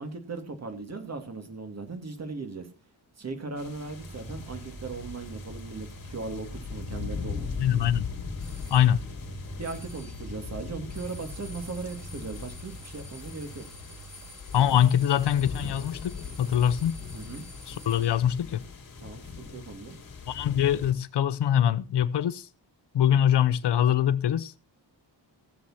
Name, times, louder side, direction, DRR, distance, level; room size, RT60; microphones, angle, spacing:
voice 1, 0.0-2.7 3.2-7.9 9.6-13.6 17.1-17.4 19.0-20.0, right 3 dB, 35° right, 2.6 m, -38 dB
sound 1, 3.6-20.9, left 5 dB, 50° left, 3.7 m, -40 dB
sound 2, 3.9-14.3, right 3 dB, 85° right, 7.6 m, -45 dB
voice 2, 7.6-8.1 8.7-9.0 14.5-17.0 17.7-18.6 20.3-22.5 22.9-24.6, left 10 dB, 70° left, 0.9 m, -23 dB
sound 3, 8.4-8.9 9.6-10.2 10.9-18.3, left 1 dB, ahead, 4.5 m, -50 dB
16.5 x 7.8 x 4.3 m
wide cardioid pair, 160°, 43 cm